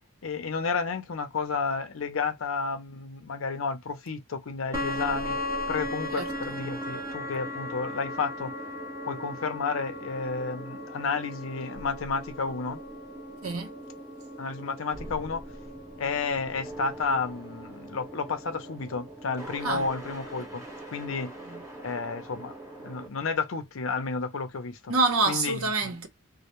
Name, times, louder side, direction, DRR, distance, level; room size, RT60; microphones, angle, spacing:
voice 1, 0.2-5.4 5.7-8.5 9.1-12.8 14.4-15.4 16.0-21.3 21.8-22.5 22.8-24.9 25.3-25.6, left 4 dB, 65° left, 0.6 m, -31 dB
sound 1, 4.7-23.1, left 1 dB, 15° right, 0.8 m, -38 dB
voice 2, 6.1-6.6 13.4-13.7 19.6-19.9 21.4-21.6 24.9-26.1, right 3 dB, 75° right, 0.7 m, -27 dB
2.1 x 2.1 x 2.9 m
head